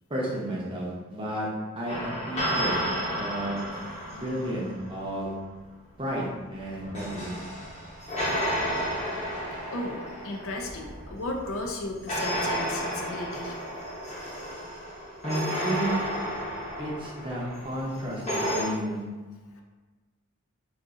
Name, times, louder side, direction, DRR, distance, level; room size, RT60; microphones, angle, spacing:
voice 1, 0.1-1.5 1.7-2.8 3.1-3.6 4.1-5.4 6.0-7.4 9.2-9.3 15.2-16.1 16.8-18.3 18.5-19.0, equal, 25° right, -4 dB, 0.6 m, -32 dB
sound 1, 1.9-5.0 6.6-11.5 12.1-18.6, equal, 30° left, 0.9 m, -32 dB
voice 2, 9.7-13.5 18.5-18.8 19.5-19.6, left 2 dB, 60° left, 1 dB, 0.4 m, -35 dB
2.5 x 2.4 x 3.9 m, 1.3 s
head